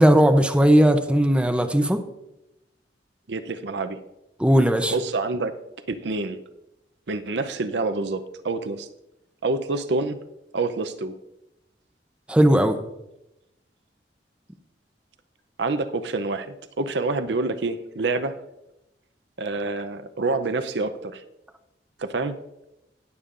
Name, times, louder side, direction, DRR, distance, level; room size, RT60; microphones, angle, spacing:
voice 1, 0.0-2.0 4.4-4.9 12.3-12.8, equal, 5° right, 7 dB, 0.6 m, -17 dB
voice 2, 3.3-4.0 4.9-5.6 5.9-6.4 7.1-8.9 9.4-10.2 10.5-11.2 15.6-18.4 19.4-21.2 22.0-22.4, right 3 dB, 75° right, 10 dB, 0.6 m, -27 dB
19.0 x 7.0 x 2.5 m, 0.90 s
head